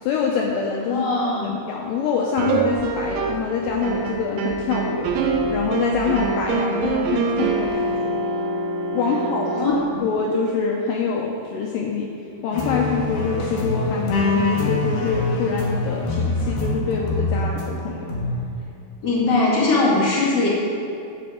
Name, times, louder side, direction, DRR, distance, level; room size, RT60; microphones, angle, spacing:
voice 1, 0.0-1.1 1.4-5.1 5.5-8.1 8.9-12.1 12.4-18.1, left 5 dB, 85° left, -1 dB, 1.9 m, -25 dB
voice 2, 0.9-1.6 9.5-10.1 19.0-20.5, left 2 dB, 35° left, -6 dB, 2.1 m, -21 dB
sound 1, 2.4-3.5 3.8-9.7, right 4 dB, 75° right, 2.4 m, -25 dB
sound 2, 2.7-8.2, right 2 dB, 50° right, 1.6 m, -40 dB
sound 3, 12.5-17.6 18.1-18.5, left 2 dB, 65° left, 3.0 m, -24 dB
11.0 x 4.3 x 7.7 m, 2.6 s
omnidirectional pair, 4.6 m